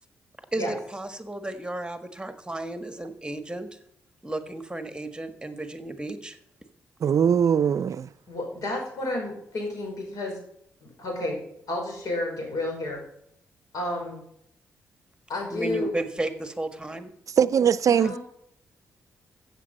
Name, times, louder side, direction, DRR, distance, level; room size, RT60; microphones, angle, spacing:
voice 1, 0.5-3.8 4.2-6.4 15.5-17.1, right 1 dB, 15° right, 1.5 m, -33 dB
voice 2, 7.0-8.1 17.4-18.2, right 8 dB, 60° right, 0.5 m, -21 dB
voice 3, 8.3-10.4 10.8-11.4 11.7-13.0 13.7-14.2 15.3-15.9 17.9-18.2, left 1 dB, 70° left, 5.3 m, -31 dB
14.5 x 7.5 x 5.4 m
supercardioid pair, 50°, 6 cm